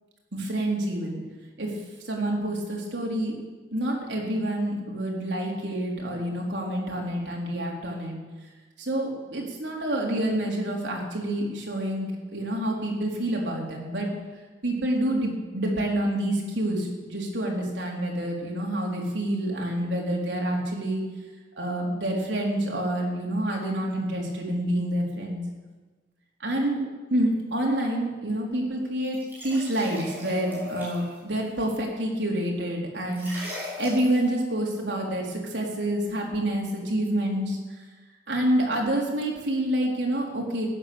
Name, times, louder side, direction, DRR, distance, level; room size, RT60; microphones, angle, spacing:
voice 1, 0.3-1.2 1.6-1.7 2.1-3.4 3.7-8.2 8.8-14.1 14.6-21.0 21.6-25.4 26.4-26.8 27.1-33.3 33.8-37.6 38.3-40.7, right 1 dB, 90° right, -1 dB, 3.7 m, -28 dB
sound 1, 29.0-31.2 33.1-34.2, left 2 dB, 10° right, 6.2 m, -38 dB
15.0 x 10.0 x 6.9 m, 1.3 s
head